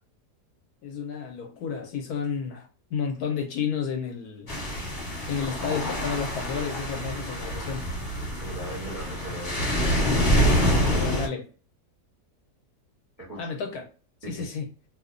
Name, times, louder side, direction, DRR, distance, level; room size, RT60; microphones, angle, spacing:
voice 1, 0.8-4.5 5.3-7.9 10.9-11.4 13.4-13.9 14.2-14.7, left 6 dB, 75° left, 2 dB, 1.0 m, -31 dB
sound 1, 4.5-11.3, equal, 35° left, 1.1 m, -26 dB
voice 2, 8.4-9.6 10.4-11.3 13.2-13.5 14.2-14.4, right 1 dB, 15° right, -3 dB, 0.7 m, -39 dB
2.8 x 2.1 x 2.4 m, 0.37 s
omnidirectional pair, 1.8 m